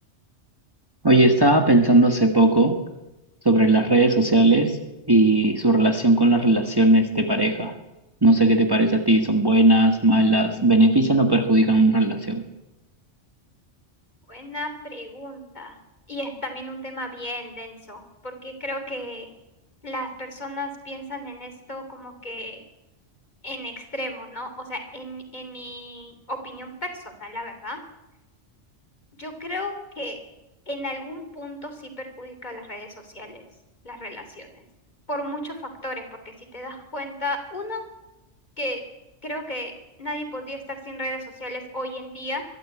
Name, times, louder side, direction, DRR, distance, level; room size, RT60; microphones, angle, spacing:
voice 1, 1.0-2.7 3.4-4.8 5.1-7.7 8.2-12.4, right 2 dB, 20° right, 3 dB, 1.6 m, -18 dB
voice 2, 14.3-15.8 16.1-19.3 19.8-22.6 23.4-27.8 29.1-30.2 30.7-33.4 33.8-34.6 35.1-37.8 38.6-38.8 39.2-39.7 40.0-42.4, left 1 dB, 35° left, 6 dB, 3.4 m, -34 dB
23.0 x 13.0 x 8.6 m, 1.0 s
omnidirectional pair, 1.2 m